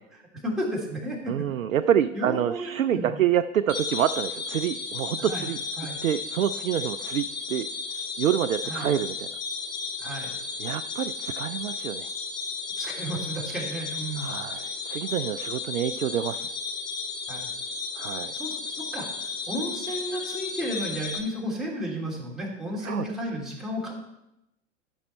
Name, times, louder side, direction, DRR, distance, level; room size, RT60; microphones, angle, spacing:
voice 1, 0.1-1.5 1.8-3.2 5.2-5.5 5.8-6.0 8.6-8.9 10.0-10.3 12.8-14.4 17.3-17.5 18.3-23.9, equal, ahead, -5 dB, 2.9 m, -33 dB
voice 2, 1.3-5.6 6.0-7.7 8.2-9.3 10.6-12.1 14.2-16.5 18.0-18.3 22.8-23.1, right 10 dB, 80° right, 10 dB, 0.5 m, -27 dB
sound 1, 3.7-21.2, left 4 dB, 85° left, 2.4 m, -34 dB
12.5 x 6.3 x 4.4 m, 0.87 s
figure-of-eight pair, 100°, 40 cm